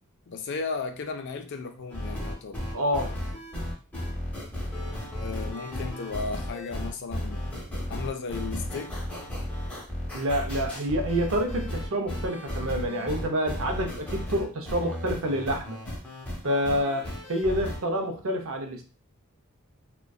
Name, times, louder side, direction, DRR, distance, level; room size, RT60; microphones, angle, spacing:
voice 1, 0.3-2.7 5.2-7.4 7.9-9.0, left 4 dB, 50° left, 6 dB, 0.4 m, -35 dB
sound 1, 1.9-17.8, left 1 dB, 5° left, 0.7 m, -34 dB
voice 2, 2.7-3.2 10.1-15.8 16.4-18.8, equal, 65° right, 4 dB, 0.5 m, -28 dB
2.5 x 2.2 x 2.3 m, 0.36 s
head